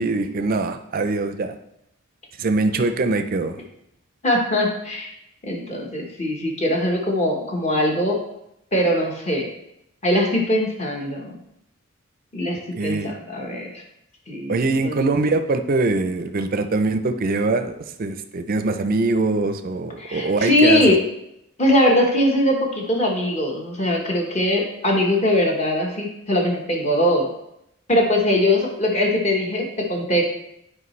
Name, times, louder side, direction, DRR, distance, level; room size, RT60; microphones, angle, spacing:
voice 1, 0.0-1.5 2.4-3.6 12.8-13.1 14.5-20.9, right 3 dB, 45° right, 8 dB, 0.4 m, -23 dB
voice 2, 4.2-5.1 5.4-8.2 8.7-9.5 10.0-11.4 12.3-13.7 14.3-15.0 20.0-21.0 21.6-27.3 27.9-30.3, left 1 dB, 30° left, 0 dB, 1.1 m, -21 dB
8.3 x 4.8 x 3.2 m, 0.81 s
head